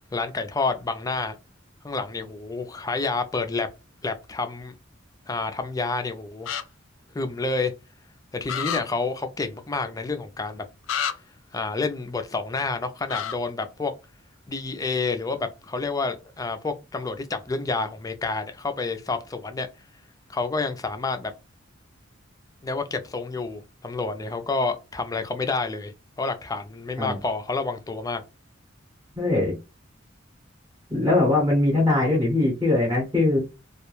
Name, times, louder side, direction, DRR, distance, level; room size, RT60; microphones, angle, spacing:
voice 1, 0.1-1.4 1.8-3.7 4.0-4.7 5.3-6.5 7.1-7.7 8.3-10.6 11.5-13.9 14.5-19.7 20.3-21.3 22.6-25.9 26.2-28.2, left 3 dB, 20° left, 0.4 m, -29 dB
sound 1, 6.5-6.6 8.5-8.8 10.9-11.1 13.1-13.3, left 8 dB, 85° left, 0.4 m, -28 dB
voice 2, 29.2-29.6 30.9-33.4, left 2 dB, 15° right, 0.8 m, -21 dB
2.3 x 2.1 x 3.0 m
head